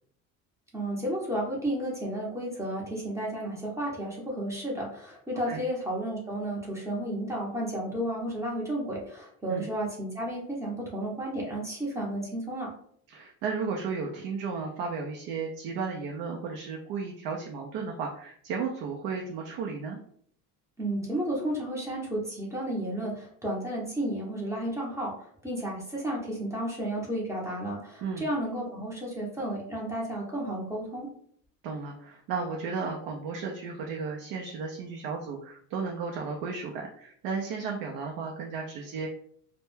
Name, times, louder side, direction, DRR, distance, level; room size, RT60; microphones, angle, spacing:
voice 1, 0.7-12.7 20.8-31.1, right 1 dB, 10° right, -3 dB, 0.6 m, -32 dB
voice 2, 13.1-20.0 28.0-28.3 31.6-39.1, right 5 dB, 80° right, 1 dB, 0.5 m, -34 dB
2.2 x 2.1 x 3.1 m, 0.63 s
cardioid pair, 155°, 34 cm